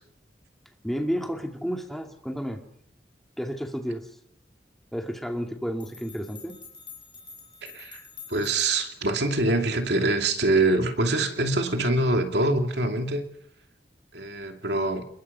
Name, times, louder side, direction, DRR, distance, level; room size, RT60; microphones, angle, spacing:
voice 1, 0.8-2.6 3.4-4.2 4.9-6.6, equal, ahead, 3 dB, 2.3 m, -31 dB
sound 1, 5.8-8.9, left 6 dB, 25° left, 5.1 m, -47 dB
voice 2, 7.6-8.0 8.3-13.2 14.1-15.0, right 2 dB, 65° right, 4 dB, 2.7 m, -24 dB
29.0 x 22.0 x 5.6 m, 0.71 s
head